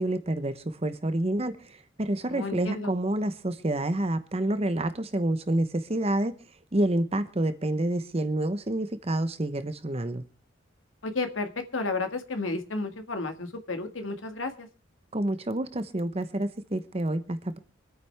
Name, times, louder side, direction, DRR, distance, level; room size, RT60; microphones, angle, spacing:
voice 1, 0.0-6.3 6.7-10.2 15.1-17.6, right 1 dB, 30° right, 12 dB, 0.9 m, -28 dB
voice 2, 2.2-2.9 11.0-14.7, left 3 dB, 85° left, 7 dB, 1.9 m, -32 dB
25.5 x 9.0 x 3.4 m, 0.33 s
head